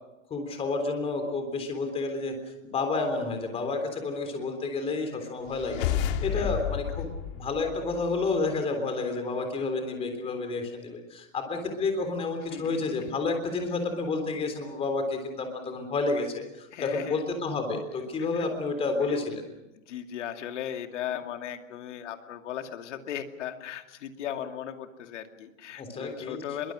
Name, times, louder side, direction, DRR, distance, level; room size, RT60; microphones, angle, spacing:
voice 1, 0.3-2.4 2.6-5.9 6.2-7.1 7.3-19.4 25.8-26.4, left 3 dB, 15° left, 6 dB, 3.6 m, -30 dB
sound 1, 5.5-8.2, left 10 dB, 40° left, 2.2 m, -31 dB
voice 2, 6.2-6.5 12.5-12.8 16.7-17.2 18.2-18.5 19.1-19.2 19.7-26.7, left 10 dB, 60° left, 6 dB, 2.5 m, -37 dB
25.5 x 23.0 x 6.4 m, 1.0 s
hypercardioid pair, 160°, 40 cm